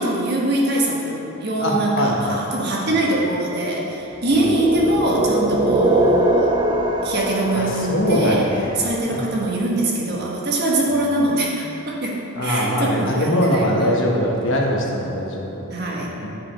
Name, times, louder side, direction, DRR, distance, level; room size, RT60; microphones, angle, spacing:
voice 1, 0.0-6.5 7.0-8.5 8.8-13.9 15.7-16.1, right 1 dB, 50° right, -2 dB, 1.3 m, -22 dB
voice 2, 1.6-2.4 2.9-3.0 4.4-4.5 7.6-8.7 9.1-9.2 12.4-15.6 15.9-16.3, equal, 60° left, -1 dB, 1.2 m, -22 dB
sound 1, 4.3-9.3, right 1 dB, 20° right, 0.5 m, -22 dB
9.5 x 5.4 x 4.5 m, 2.8 s
head